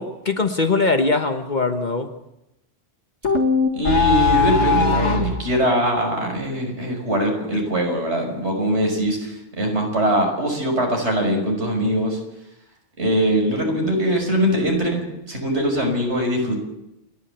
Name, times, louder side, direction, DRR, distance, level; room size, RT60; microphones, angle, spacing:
voice 1, 0.0-2.1, left 3 dB, 40° left, 7 dB, 1.4 m, -21 dB
sound 1, 3.2-5.4, left 4 dB, 80° left, 2.5 m, -19 dB
voice 2, 3.7-12.2 13.0-16.6, equal, 70° right, 1 dB, 6.2 m, -22 dB
29.5 x 11.0 x 8.2 m, 0.86 s
omnidirectional pair, 1.2 m